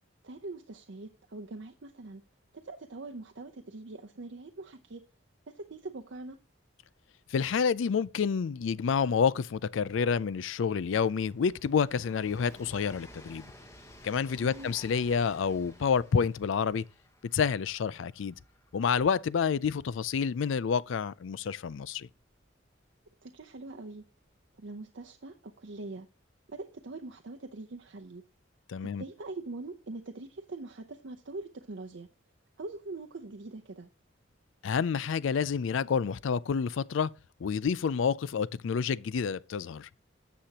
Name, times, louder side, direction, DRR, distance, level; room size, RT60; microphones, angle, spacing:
voice 1, 0.2-2.2 2.5-5.0 5.5-6.4 14.4-14.7 23.2-24.0 24.6-26.1 26.5-28.2 28.8-32.1 32.6-33.9, right 2 dB, 70° right, 0.7 m, -43 dB
Train, 6.1-6.2 6.4-23.0 24.0-24.1, left 1 dB, 15° left, 1.1 m, -55 dB
voice 2, 7.3-13.5 14.0-16.9 17.3-18.3 18.7-22.1 28.7-29.0 34.6-37.1 37.4-39.9, left 6 dB, 75° left, 0.4 m, -29 dB
13.0 x 7.6 x 2.9 m
head